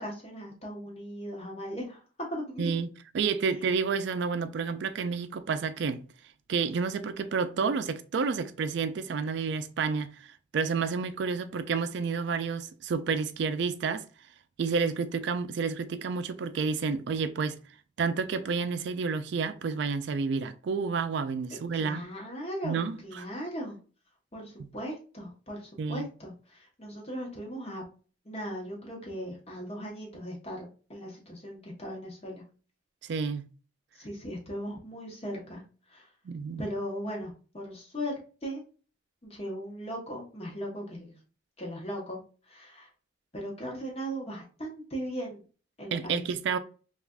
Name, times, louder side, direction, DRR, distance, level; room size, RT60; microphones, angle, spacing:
voice 1, 0.0-2.0 2.3-2.7 21.5-23.8 24.3-27.8 28.2-32.4 33.9-35.6 35.9-36.1 36.6-38.1 38.4-38.6 39.2-41.2 41.6-42.2 42.5-42.9 43.3-45.4 45.8-46.3, equal, 30° left, 1.0 m, -38 dB
voice 2, 3.1-6.0 6.5-10.1 10.5-14.0 14.6-17.6 18.0-22.1 22.6-23.3 24.6-24.7 25.8-26.1 33.0-33.5 36.3-36.6 45.9-46.6, right 5 dB, 60° right, 0.3 m, -30 dB
3.3 x 2.4 x 2.3 m
head